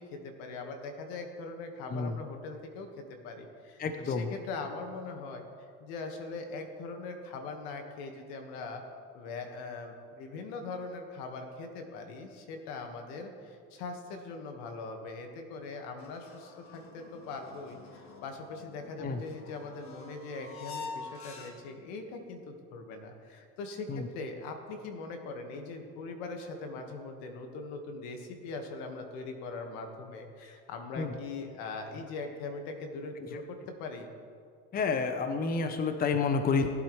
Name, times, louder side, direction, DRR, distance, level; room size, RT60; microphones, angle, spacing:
voice 1, 0.0-5.4 5.8-8.8 9.1-34.1, left 3 dB, 85° left, 4 dB, 1.6 m, -41 dB
voice 2, 3.8-4.3 19.0-19.2 23.9-24.1 31.0-31.1 33.2-33.4 34.7-36.7, left 4 dB, 30° left, 7 dB, 0.8 m, -30 dB
sound 1, 16.0-21.9, left 4 dB, 45° left, 1.8 m, -47 dB
18.5 x 8.3 x 3.2 m, 2.2 s
cardioid pair, 120°, 30 cm